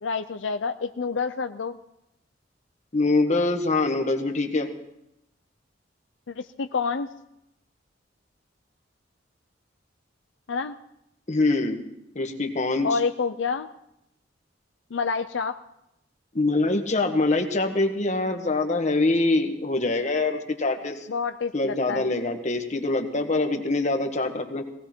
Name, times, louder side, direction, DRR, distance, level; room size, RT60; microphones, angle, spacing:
voice 1, 0.0-1.8 6.3-7.1 10.5-10.8 12.8-13.7 14.9-15.6 21.1-22.0, left 5 dB, 80° left, 9 dB, 0.5 m, -28 dB
voice 2, 2.9-4.7 11.3-11.8 12.1-13.0 16.3-21.1 21.5-24.6, left 2 dB, 40° left, 5 dB, 1.5 m, -24 dB
18.5 x 17.5 x 4.4 m, 0.83 s
head